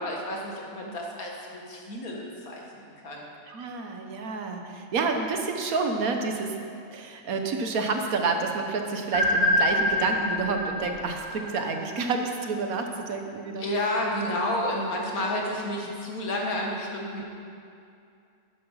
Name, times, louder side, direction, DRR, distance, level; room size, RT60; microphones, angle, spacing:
voice 1, 0.0-3.2 13.6-17.2, left 1 dB, 85° left, -1 dB, 2.2 m, -31 dB
voice 2, 3.5-6.6 6.9-13.7 14.3-14.4 17.2-17.3, right 4 dB, 80° right, 4 dB, 1.6 m, -29 dB
sound 1, 9.1-12.1, left 1 dB, 20° left, 2.5 m, -26 dB
12.0 x 10.0 x 5.6 m, 2.5 s
omnidirectional pair, 1.5 m